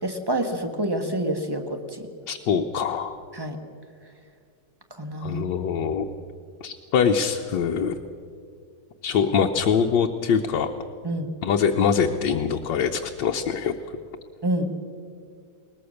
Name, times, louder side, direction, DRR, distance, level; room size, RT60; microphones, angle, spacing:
voice 1, 0.0-2.1 3.3-3.6 4.9-5.5 11.0-11.3 14.4-14.8, right 1 dB, 15° right, 5 dB, 1.3 m, -27 dB
voice 2, 2.3-3.2 5.2-6.1 6.6-8.0 9.0-10.7 11.4-13.7, left 7 dB, 75° left, 3 dB, 1.5 m, -23 dB
21.0 x 20.0 x 6.5 m, 2.3 s
omnidirectional pair, 2.0 m